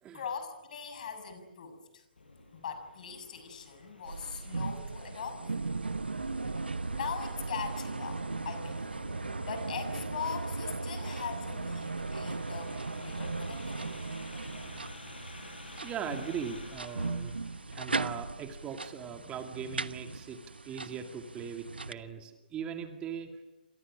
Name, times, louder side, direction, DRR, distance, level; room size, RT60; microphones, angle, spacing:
voice 1, 0.1-2.0 2.5-5.6 6.4-14.0, left 6 dB, 55° left, 9 dB, 6.8 m, -41 dB
sound 1, 2.2-17.8, left 2 dB, 80° left, 7.6 m, -51 dB
sound 2, 4.0-21.9, right 3 dB, 85° right, 1.1 m, -37 dB
voice 2, 15.8-17.4 17.7-23.3, right 7 dB, 20° right, 5 dB, 2.2 m, -40 dB
29.0 x 26.5 x 6.2 m, 0.97 s
figure-of-eight pair, 130°, 5 cm